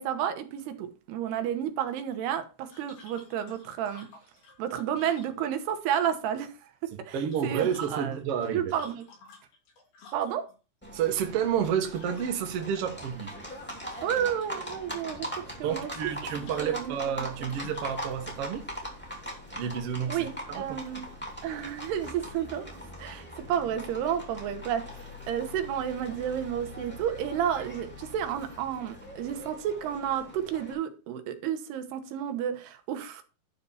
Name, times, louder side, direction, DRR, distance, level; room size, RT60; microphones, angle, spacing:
voice 1, 0.0-4.1 4.6-6.5 7.1-7.2 7.4-8.2 8.5-9.0 10.1-10.5 14.0-15.3 15.6-15.9 16.4-17.5 20.1-21.0 21.4-22.6 23.0-33.2, right 9 dB, 90° right, 3.1 m, -31 dB
sound 1, 2.7-5.8 7.1-10.5 11.9-12.6 12.9-13.6 13.9-14.8 16.0-18.0, left 4 dB, 75° left, 4.9 m, -53 dB
voice 2, 7.1-8.7 10.9-13.3 15.6-18.6 19.5-20.8, right 8 dB, 65° right, 1.4 m, -30 dB
Livestock farm animals working animals, 10.8-30.7, equal, 5° left, 1.7 m, -41 dB
11.5 x 4.1 x 5.5 m
omnidirectional pair, 4.5 m